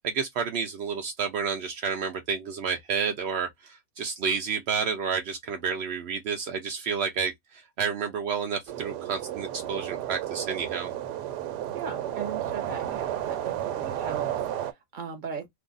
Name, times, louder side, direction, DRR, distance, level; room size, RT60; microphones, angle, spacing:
voice 1, 0.0-10.9, right 6 dB, 70° right, 0.6 m, -30 dB
sound 1, 8.7-14.7, right 11 dB, 90° right, 1.2 m, -32 dB
voice 2, 11.7-15.5, right 5 dB, 35° right, 0.9 m, -38 dB
2.7 x 2.4 x 3.8 m
omnidirectional pair, 1.7 m